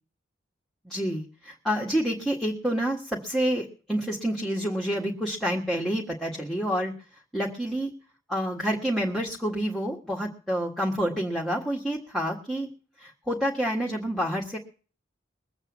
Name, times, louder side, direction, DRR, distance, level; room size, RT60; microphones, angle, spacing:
voice 1, 0.8-7.9 8.3-12.7 13.0-14.6, equal, ahead, -2 dB, 1.6 m, -28 dB
21.5 x 8.0 x 7.4 m, 0.39 s
head